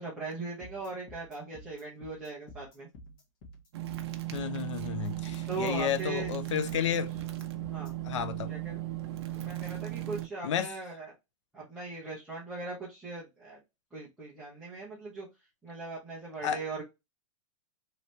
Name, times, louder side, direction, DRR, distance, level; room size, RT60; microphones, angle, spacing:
voice 1, 0.0-2.9 5.5-6.3 6.9-7.0 7.7-7.9 8.5-8.8 9.3-11.1 11.5-13.6 13.9-15.3 15.6-16.8, right 3 dB, 5° right, 0.7 m, -39 dB
sound 1, 0.6-7.9, equal, 40° left, 1.4 m, -51 dB
sound 2, 3.7-10.3, right 15 dB, 50° right, 0.6 m, -37 dB
voice 2, 4.3-7.1 8.0-8.5 10.4-10.7 16.4-16.6, left 8 dB, 60° left, 0.6 m, -32 dB
3.2 x 2.8 x 3.1 m
supercardioid pair, 170°, 18 cm